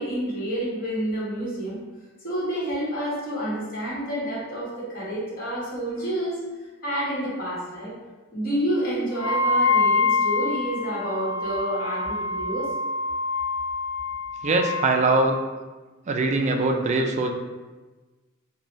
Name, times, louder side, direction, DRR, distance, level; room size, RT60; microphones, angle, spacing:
voice 1, 0.0-1.8 2.2-6.4 6.8-7.9 8.3-12.7, right 1 dB, 45° left, -8 dB, 1.3 m, -29 dB
Wind instrument woodwind instrument, 9.2-15.0, left 3 dB, 70° left, 0.4 m, -25 dB
voice 2, 14.4-15.4 16.1-17.3, right 3 dB, 35° right, 4 dB, 0.3 m, -22 dB
3.8 x 2.2 x 3.0 m, 1.2 s
head